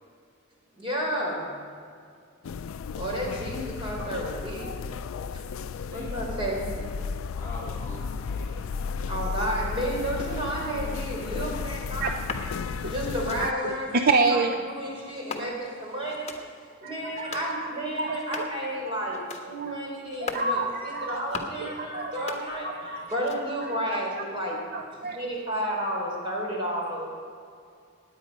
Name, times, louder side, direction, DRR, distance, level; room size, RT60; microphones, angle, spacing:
voice 1, 0.8-1.5 3.0-4.7 5.3-5.4 5.9-6.7 9.0-12.1 12.8-16.3 16.8-24.7 25.0-27.1, equal, 25° right, -2 dB, 3.6 m, -31 dB
sound 1, 2.4-13.5, left 5 dB, 85° left, 0.4 m, -34 dB
voice 2, 5.5-6.2 7.4-8.7, left 1 dB, 10° left, -4 dB, 3.8 m, -44 dB
sound 2, 12.1-12.5 13.1-13.4 14.1-14.4 15.1-15.8 16.1-16.4 17.1-17.5 18.1-18.6 19.1-19.5 20.1-20.5 21.1-21.6 22.1-22.8 23.1-23.6, left 4 dB, 35° left, 1.3 m, -39 dB
voice 3, 13.4-14.6 15.4-15.5 16.8-17.7 18.0-18.2 19.6-19.7 20.2-21.2 21.6-22.3 22.6-23.0 23.6-23.7 24.2-24.3 24.7-25.2 26.5-26.6, right 3 dB, 50° right, 5 dB, 0.6 m, -28 dB
18.0 x 9.4 x 5.3 m, 2.3 s
head